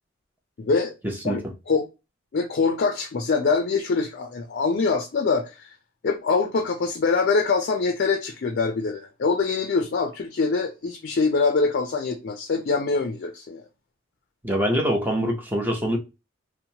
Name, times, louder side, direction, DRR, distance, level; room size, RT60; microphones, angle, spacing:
voice 1, 0.6-0.9 1.2-1.4 1.7-1.9 2.3-5.7 6.0-13.7, left 4 dB, 55° left, 0.4 m, -24 dB
voice 2, 14.4-16.0, equal, 10° right, 0.6 m, -24 dB
2.9 x 2.1 x 2.7 m
head